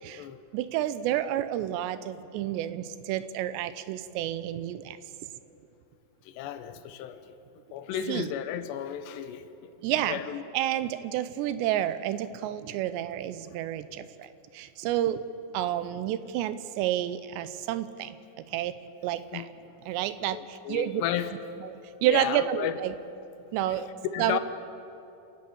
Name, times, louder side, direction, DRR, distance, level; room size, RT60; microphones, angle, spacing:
voice 1, 0.5-5.0 8.1-8.3 9.8-10.2 10.5-15.2 15.5-18.8 19.0-19.5 19.9-21.0 21.6-21.7 22.0-22.9 23.5-23.9 24.2-24.4, right 12 dB, 85° right, 13 dB, 3.0 m, -30 dB
voice 2, 6.2-7.4 7.7-10.4 19.3-19.7 20.3-21.3 22.0-22.8 23.7-23.8 24.1-24.4, left 10 dB, 85° left, 11 dB, 3.0 m, -34 dB
28.5 x 10.5 x 8.6 m, 2.7 s
omnidirectional pair, 4.9 m